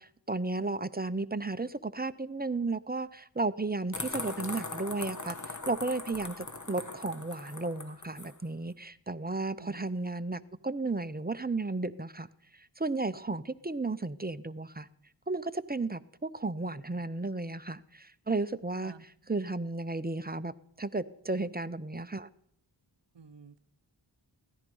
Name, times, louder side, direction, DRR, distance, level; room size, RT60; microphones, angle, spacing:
voice 1, 0.0-12.3 12.8-14.9 15.3-18.9 19.3-20.5 20.8-22.3, right 3 dB, 20° right, 13 dB, 0.7 m, -34 dB
sound 1, 3.9-8.3, left 3 dB, 40° left, 1.5 m, -40 dB
voice 2, 23.1-23.6, right 5 dB, 60° right, 10 dB, 0.9 m, -51 dB
17.0 x 14.0 x 5.5 m, 0.71 s
wide cardioid pair, 50°, 47 cm